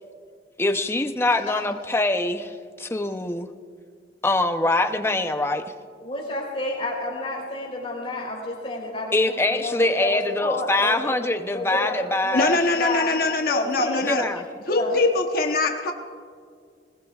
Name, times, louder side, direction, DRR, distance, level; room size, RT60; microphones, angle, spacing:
voice 1, 0.6-3.5 4.2-5.6 9.1-12.6 14.0-14.4, left 2 dB, 15° left, 7 dB, 0.6 m, -24 dB
voice 2, 6.0-11.1 11.5-12.5 12.8-13.2 13.5-14.2 14.7-15.0, left 2 dB, 35° left, -2 dB, 3.8 m, -30 dB
voice 3, 12.3-14.3 14.7-15.9, left 3 dB, 55° left, 4 dB, 1.0 m, -22 dB
20.5 x 20.0 x 2.4 m, 2.1 s
head